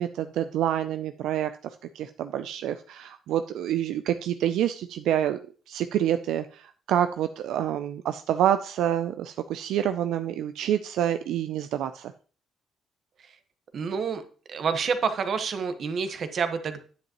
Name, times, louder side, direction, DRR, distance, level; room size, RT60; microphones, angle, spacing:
voice 1, 0.0-1.5 1.9-5.4 5.7-12.1, right 11 dB, 85° right, 9 dB, 0.4 m, -27 dB
voice 2, 13.7-14.2 14.5-16.8, right 6 dB, 55° right, 9 dB, 1.1 m, -28 dB
9.3 x 7.9 x 2.9 m, 0.40 s
cardioid pair, 90°, 0 cm